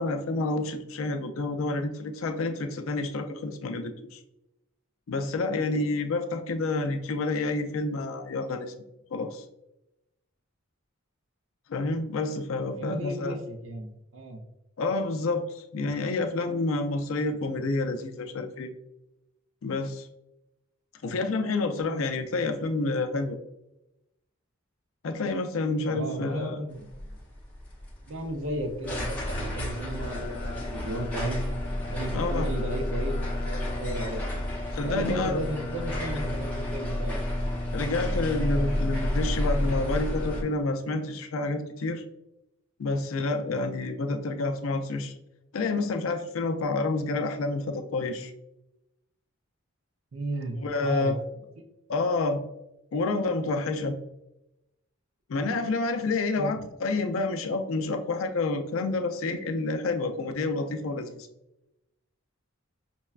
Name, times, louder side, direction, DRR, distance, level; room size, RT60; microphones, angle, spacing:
voice 1, 0.0-4.2 5.1-8.7 9.1-9.4 11.7-13.4 14.8-18.7 19.6-20.1 21.0-23.4 25.0-26.6 32.1-32.5 34.7-35.4 37.7-42.0 42.8-45.1 45.5-48.3 50.6-51.2 51.9-52.4 52.9-54.0 55.3-61.3, left 3 dB, 75° left, 7 dB, 0.4 m, -29 dB
voice 2, 12.7-14.4 25.9-27.1 28.1-31.4 31.9-33.2 33.5-34.2 34.8-37.2 50.1-51.2 56.4-56.5, right 1 dB, 65° right, 3 dB, 0.6 m, -34 dB
sound 1, 26.8-40.4, left 1 dB, 10° left, 0.8 m, -30 dB
5.4 x 2.2 x 2.3 m, 0.89 s
head